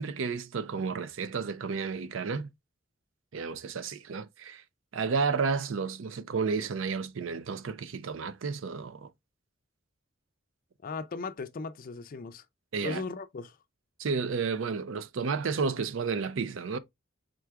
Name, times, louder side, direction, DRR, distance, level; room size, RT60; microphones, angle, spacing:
voice 1, 0.0-2.5 3.3-4.6 4.9-9.1 12.7-13.0 14.0-16.8, right 5 dB, 65° right, 0.5 m, -32 dB
voice 2, 10.8-12.4 12.8-13.6, left 4 dB, 45° left, 0.4 m, -37 dB
4.6 x 3.7 x 2.3 m
head